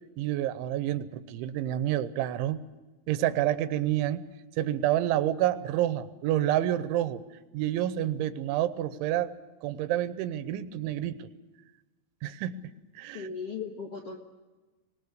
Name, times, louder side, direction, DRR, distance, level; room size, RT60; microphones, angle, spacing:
voice 1, 0.2-2.6 3.1-4.2 4.6-7.2 7.5-9.3 9.6-11.3 12.2-12.6 13.0-13.3, right 12 dB, 90° right, 12 dB, 3.4 m, -28 dB
voice 2, 13.1-14.2, left 5 dB, 60° left, 0 dB, 1.6 m, -37 dB
25.0 x 19.5 x 6.8 m, 1.2 s
omnidirectional pair, 5.3 m